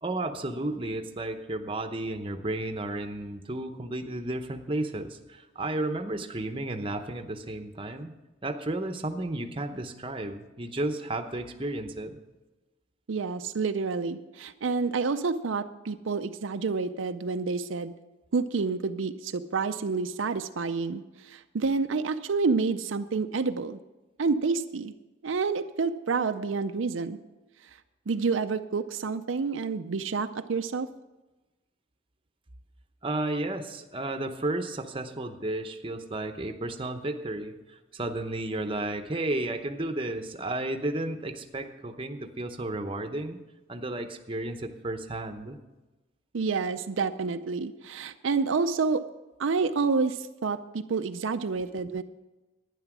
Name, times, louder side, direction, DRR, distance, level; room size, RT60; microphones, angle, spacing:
voice 1, 0.0-8.1 8.4-12.2 33.0-43.4 43.7-45.6, right 2 dB, 25° right, 6 dB, 0.8 m, -33 dB
voice 2, 13.1-17.9 18.3-23.8 24.2-24.9 25.2-27.2 28.1-30.9 46.3-49.0 49.4-52.0, right 4 dB, 75° right, 9 dB, 0.5 m, -28 dB
11.5 x 10.0 x 6.1 m, 1.1 s
head